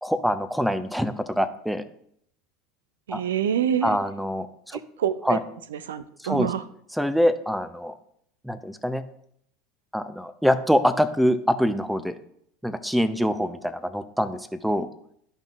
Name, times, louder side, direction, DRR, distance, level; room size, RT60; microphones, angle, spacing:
voice 1, 0.0-1.8 3.1-3.2 3.8-4.8 5.2-5.4 6.2-6.5 7.0-7.9 8.4-9.0 9.9-12.2 12.6-14.9, equal, ahead, 12 dB, 0.7 m, -24 dB
voice 2, 3.1-4.0 4.7-5.4 5.7-6.6, right 9 dB, 70° right, 14 dB, 0.5 m, -27 dB
13.0 x 5.3 x 2.5 m, 0.70 s
figure-of-eight pair, 75°, 0 cm